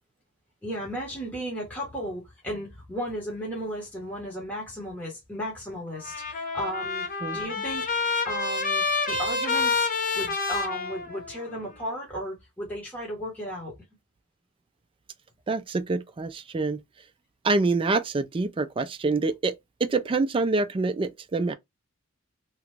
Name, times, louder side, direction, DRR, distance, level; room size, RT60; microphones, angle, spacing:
voice 1, 0.6-7.9 8.2-13.8, equal, 5° left, 1.2 m, -35 dB
Trumpet, 5.9-11.6, left 4 dB, 40° left, 0.8 m, -28 dB
voice 2, 15.5-16.8 17.4-19.5 19.8-21.5, right 3 dB, 25° right, 0.3 m, -26 dB
3.0 x 2.4 x 3.3 m
head